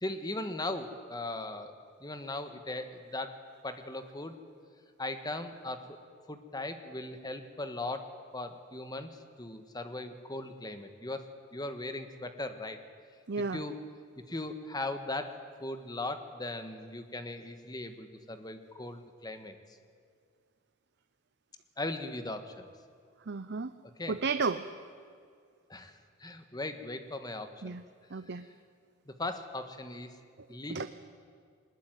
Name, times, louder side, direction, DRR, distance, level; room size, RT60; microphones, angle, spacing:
voice 1, 0.0-1.7 2.0-3.4 3.6-4.4 5.0-6.0 6.3-11.3 11.5-12.8 13.5-13.8 14.3-19.6 21.8-22.7 24.0-24.2 25.7-25.9 26.2-27.8 29.1-30.1 30.5-30.9, left 2 dB, 20° left, 8 dB, 1.5 m, -38 dB
voice 2, 13.3-13.6 23.3-23.7 24.1-24.6 27.6-27.8 28.1-28.4 30.7-30.9, right 4 dB, 55° right, 11 dB, 0.7 m, -32 dB
21.5 x 20.0 x 9.2 m, 2.2 s
head